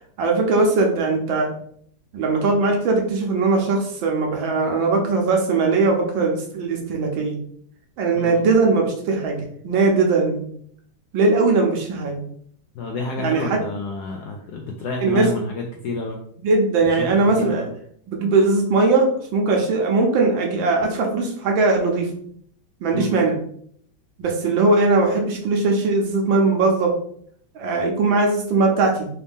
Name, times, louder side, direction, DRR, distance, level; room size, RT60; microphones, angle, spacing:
voice 1, 0.2-1.5 2.1-7.4 8.0-10.5 11.1-12.2 13.2-13.6 15.0-15.3 16.4-17.6 18.1-22.1 22.8-23.4 24.2-26.9 27.5-29.1, right 3 dB, 75° right, 1 dB, 1.5 m, -20 dB
voice 2, 12.7-16.2 16.9-17.7 22.9-23.2, left 3 dB, 75° left, 1 dB, 0.9 m, -29 dB
4.1 x 2.7 x 3.4 m, 0.64 s
omnidirectional pair, 2.2 m